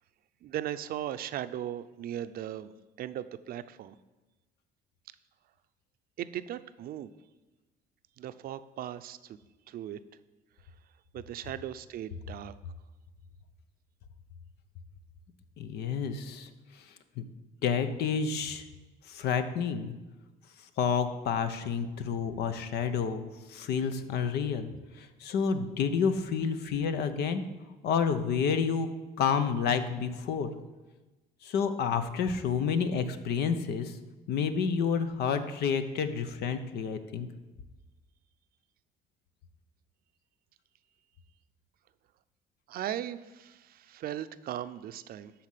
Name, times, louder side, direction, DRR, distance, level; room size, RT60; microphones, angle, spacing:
voice 1, 0.4-2.7 3.0-3.9 6.2-7.1 8.2-9.4 9.7-10.0 11.1-12.5 42.7-45.3, right 11 dB, 60° right, 12 dB, 0.6 m, -38 dB
voice 2, 15.6-16.5 17.2-17.3 17.6-18.6 19.1-19.9 20.8-24.7 25.0-27.4 27.8-28.9 29.2-30.5 31.4-34.0 34.3-37.3, left 6 dB, 75° left, 9 dB, 0.9 m, -29 dB
12.5 x 4.3 x 7.5 m, 1.2 s
cardioid pair, 110°, 17 cm